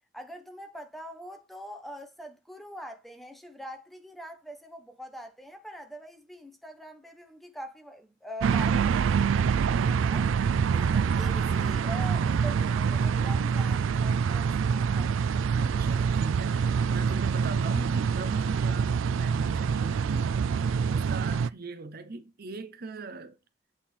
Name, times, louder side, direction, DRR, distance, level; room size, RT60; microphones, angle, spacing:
voice 1, 0.1-10.3 10.7-15.1, equal, ahead, 1.0 m, -43 dB
sound 1, 8.4-21.5, right 6 dB, 85° right, 0.3 m, -26 dB
sound 2, 8.5-9.4 10.9-13.4 14.8-19.2 20.6-20.7, left 3 dB, 60° left, 3.1 m, -56 dB
voice 2, 15.5-20.4 20.9-23.4, right 3 dB, 50° right, 0.8 m, -40 dB
8.2 x 3.7 x 4.3 m
head